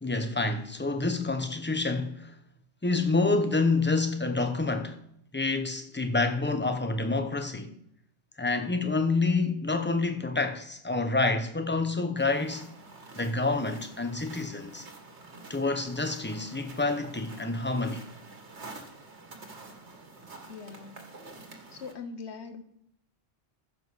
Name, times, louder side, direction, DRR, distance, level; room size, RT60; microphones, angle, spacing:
voice 1, 0.0-2.4 2.8-5.0 5.3-7.7 8.4-12.7 13.1-14.8 15.5-18.1, left 3 dB, 10° left, 0.8 m, -28 dB
sound 1, 12.2-21.9, right 3 dB, 90° right, 1.9 m, -48 dB
voice 2, 20.5-21.0 21.7-22.6, left 5 dB, 80° left, 1.3 m, -41 dB
14.5 x 5.0 x 6.4 m
omnidirectional pair, 1.1 m